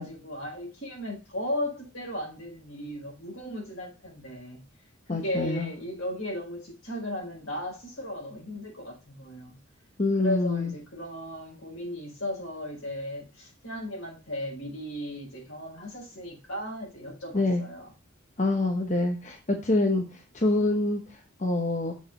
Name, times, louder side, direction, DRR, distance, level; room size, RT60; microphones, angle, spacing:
voice 1, 0.0-4.6 5.1-9.6 10.2-17.9, left 1 dB, 85° left, 4.8 m, -36 dB
voice 2, 5.1-5.7 10.0-10.7 17.3-17.6 18.4-21.9, left 2 dB, 35° left, 0.9 m, -26 dB
7.2 x 4.7 x 4.3 m
head